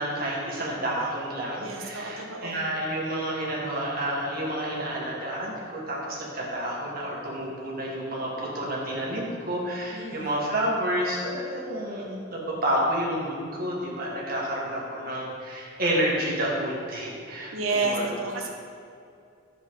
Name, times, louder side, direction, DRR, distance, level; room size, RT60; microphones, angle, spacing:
voice 1, 0.0-18.2, right 1 dB, 45° right, -4 dB, 2.0 m, -30 dB
voice 2, 1.6-2.6 9.9-10.3 17.5-18.5, right 3 dB, 80° right, 1 dB, 1.3 m, -30 dB
11.0 x 7.1 x 3.9 m, 2.5 s
head